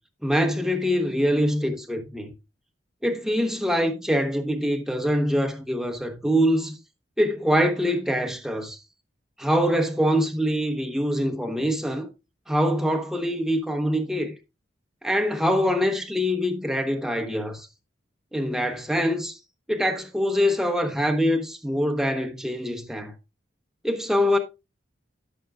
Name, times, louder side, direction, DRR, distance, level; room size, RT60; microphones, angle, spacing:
voice 1, 0.2-2.3 3.0-6.8 7.2-8.8 9.4-12.1 12.5-14.4 15.0-17.7 18.3-19.4 19.7-23.1 23.8-24.4, equal, 5° right, 1.0 m, -24 dB
12.5 x 6.5 x 2.4 m
head